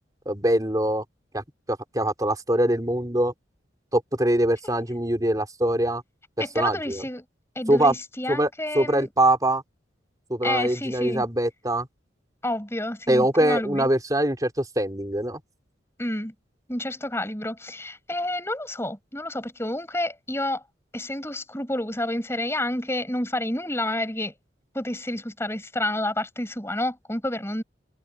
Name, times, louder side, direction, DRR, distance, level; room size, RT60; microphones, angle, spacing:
voice 1, 0.3-1.0 1.3-1.4 1.7-3.3 3.9-6.0 6.5-7.0 7.7-8.0 8.3-8.5 8.7-9.6 10.3-11.9 13.1-15.4, right 1 dB, 20° right, 4.1 m, -23 dB
voice 2, 6.4-7.2 7.6-9.1 10.4-11.2 12.4-13.9 16.0-16.3 16.7-20.6 20.9-24.3 24.7-27.6, left 1 dB, 15° left, 7.0 m, -29 dB
head